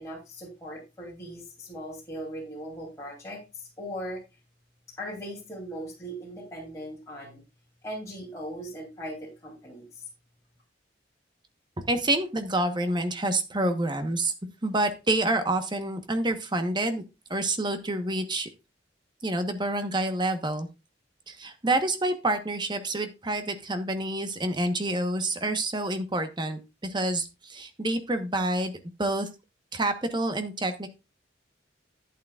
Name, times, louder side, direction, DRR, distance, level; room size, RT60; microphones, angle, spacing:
voice 1, 0.0-4.2 5.0-7.4 7.8-9.9, equal, 15° left, -5 dB, 2.9 m, -39 dB
voice 2, 11.9-14.3 14.6-17.0 17.3-18.5 19.2-20.7 21.3-29.3 29.7-30.9, right 1 dB, 25° right, 8 dB, 1.1 m, -28 dB
11.0 x 8.6 x 2.4 m, 0.26 s
head